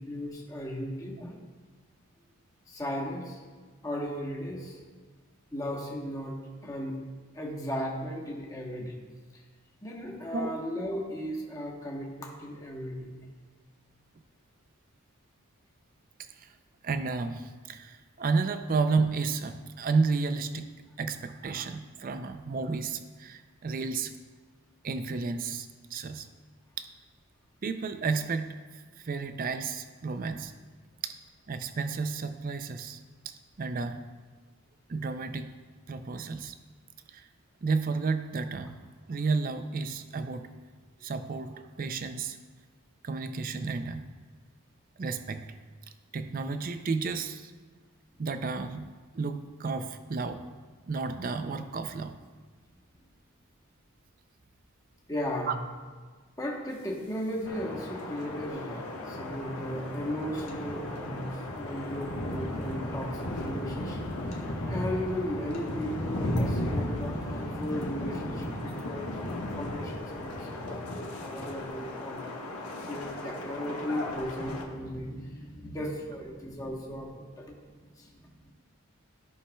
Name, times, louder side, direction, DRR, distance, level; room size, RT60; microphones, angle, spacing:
voice 1, 0.0-1.4 2.7-3.4 3.8-4.8 5.5-6.3 6.6-7.0 7.3-9.0 9.8-13.2 55.1-55.6 56.4-72.4 72.9-78.3, equal, 15° left, -2 dB, 1.0 m, -36 dB
voice 2, 16.8-20.7 21.0-24.1 24.8-26.3 26.8-26.9 27.6-30.5 31.0-31.2 31.5-33.0 33.3-34.1 34.9-35.5 35.9-36.6 37.1-37.3 37.6-38.8 39.1-40.5 41.0-42.4 43.0-44.1 45.0-45.5 46.1-47.5 48.2-48.9 49.1-50.4 50.9-52.1 55.5-55.6, right 4 dB, 40° right, 9 dB, 0.4 m, -32 dB
sound 1, 57.5-74.6, left 1 dB, 75° left, 1.2 m, -35 dB
14.0 x 5.7 x 2.2 m, 1.5 s
head